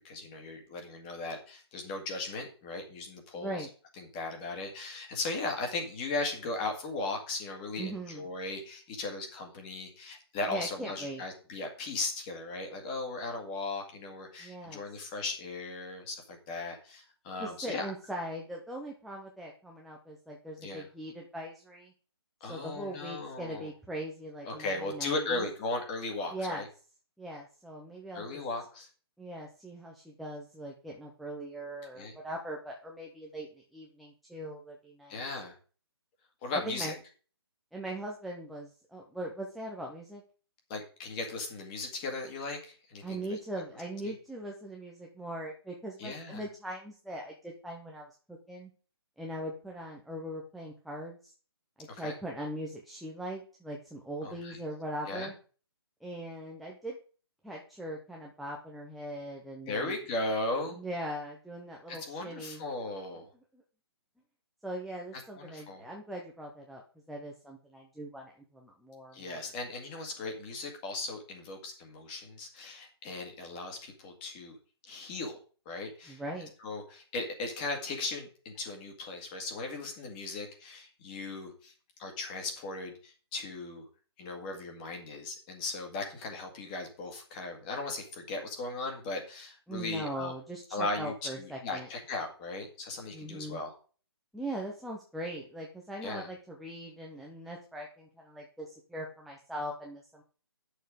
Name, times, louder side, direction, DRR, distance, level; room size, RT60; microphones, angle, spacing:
voice 1, 0.0-3.7 4.0-17.8 20.6-20.9 22.4-23.7 24.5-26.7 28.1-28.9 32.0-32.1 35.1-35.6 36.4-37.0 40.7-43.4 44.0-44.1 46.0-46.4 51.9-52.2 54.2-54.6 55.1-55.3 59.7-60.8 61.9-63.3 65.4-65.8 69.1-74.6 74.9-75.4 75.7-76.2 76.6-81.7 82.0-83.8 84.2-90.3 90.7-93.7 96.0-96.3, left 2 dB, 20° left, 2 dB, 2.0 m, -37 dB
voice 2, 3.3-3.7 7.8-8.3 10.5-11.2 14.4-14.8 17.4-21.9 22.5-25.5 26.3-26.6 27.2-28.4 29.2-35.2 36.5-37.0 37.7-40.2 43.0-48.7 49.2-51.3 51.8-55.3 56.0-57.0 57.4-60.0 60.7-62.6 63.5-63.6 64.6-66.8 67.1-69.5 76.1-76.5 89.7-91.9 93.1-93.6 94.3-100.2, right 1 dB, ahead, -1 dB, 0.5 m, -40 dB
10.0 x 6.6 x 5.0 m, 0.39 s
hypercardioid pair, 170°, 14 cm